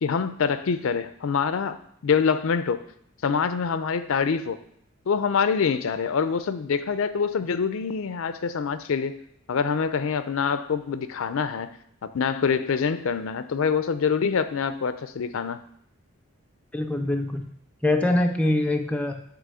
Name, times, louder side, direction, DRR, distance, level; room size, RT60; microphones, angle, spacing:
voice 1, 0.0-1.8 2.0-2.8 3.2-4.6 5.1-9.2 9.5-11.7 12.0-15.6, left 6 dB, 70° left, 12 dB, 0.4 m, -25 dB
voice 2, 16.7-17.5 17.8-19.2, left 1 dB, 5° left, 4 dB, 0.3 m, -23 dB
7.6 x 3.0 x 6.2 m, 0.69 s
head